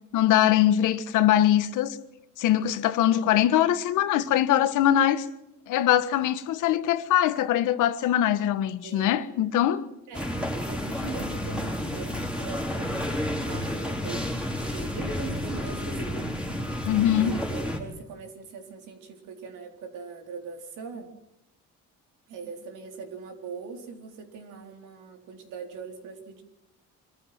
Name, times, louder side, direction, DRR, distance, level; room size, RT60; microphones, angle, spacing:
voice 1, 0.1-2.0 2.4-5.2 5.7-9.8 16.9-17.3, left 11 dB, 85° left, 1.5 m, -22 dB
voice 2, 8.8-9.3 10.1-16.2 17.2-21.1 22.3-26.4, right 5 dB, 80° right, 4.0 m, -41 dB
sound 1, 10.1-17.8, left 1 dB, 5° right, 4.3 m, -31 dB
25.5 x 14.5 x 7.7 m
cardioid pair, 125°, 30 cm